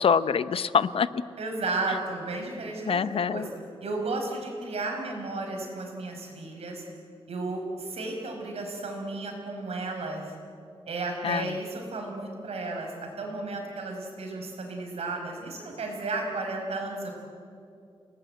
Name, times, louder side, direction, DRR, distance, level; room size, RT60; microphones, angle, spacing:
voice 1, 0.0-1.2 2.9-3.5 11.2-11.6, left 6 dB, 65° left, 14 dB, 0.7 m, -25 dB
voice 2, 1.4-3.4 3.8-6.8 7.3-10.3 10.9-17.1, right 2 dB, 85° right, 2 dB, 5.6 m, -33 dB
29.5 x 19.5 x 9.3 m, 2.6 s
wide cardioid pair, 165°, 10 cm